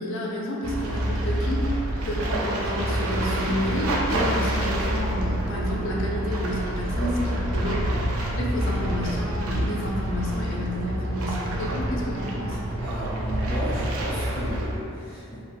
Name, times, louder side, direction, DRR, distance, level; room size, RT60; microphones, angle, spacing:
voice 1, 0.0-1.7 2.0-7.9 8.3-12.6, equal, 65° left, -3 dB, 0.5 m, -30 dB
sound 1, 0.6-14.8, right 1 dB, 80° right, 0.4 m, -27 dB
voice 2, 12.8-15.4, right 1 dB, 15° left, -11 dB, 0.5 m, -33 dB
3.4 x 2.5 x 2.4 m, 2.7 s
head